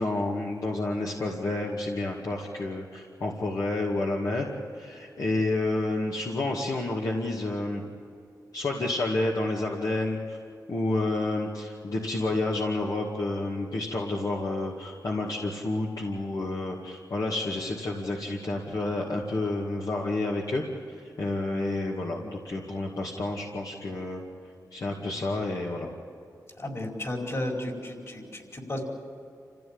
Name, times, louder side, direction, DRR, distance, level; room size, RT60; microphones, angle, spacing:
voice 1, 0.0-4.5 4.7-7.8 8.5-10.4 10.7-20.6 21.0-24.2 24.7-25.9, left 2 dB, 65° left, -2 dB, 2.2 m, -30 dB
voice 2, 26.6-28.8, left 1 dB, 45° left, 1 dB, 4.8 m, -33 dB
28.0 x 15.5 x 8.9 m, 2.6 s
wide cardioid pair, 85°, 7 cm